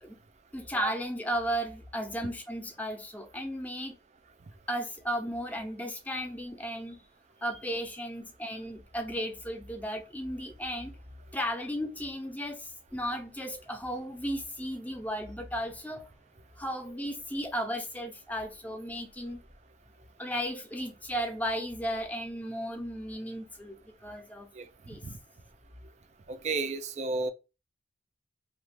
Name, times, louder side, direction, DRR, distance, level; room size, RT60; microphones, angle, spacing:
voice 1, 0.5-4.0 4.7-7.0 7.4-10.9 11.3-16.1 16.6-19.4 20.2-24.5 24.9-25.0, equal, 10° left, 0.6 m, -35 dB
voice 2, 26.3-27.3, right 3 dB, 40° right, 0.4 m, -32 dB
3.0 x 2.3 x 3.4 m
head